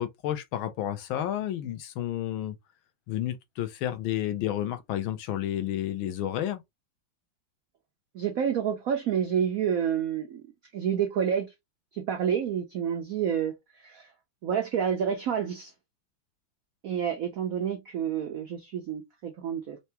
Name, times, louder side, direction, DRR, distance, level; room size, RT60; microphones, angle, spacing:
voice 1, 0.0-2.6 3.1-6.6, left 12 dB, 85° left, 1.5 m, -31 dB
voice 2, 8.1-10.4 10.7-11.5 11.9-14.1 14.4-15.7 16.8-19.8, right 8 dB, 70° right, 0.8 m, -29 dB
4.6 x 2.1 x 2.7 m
omnidirectional pair, 2.2 m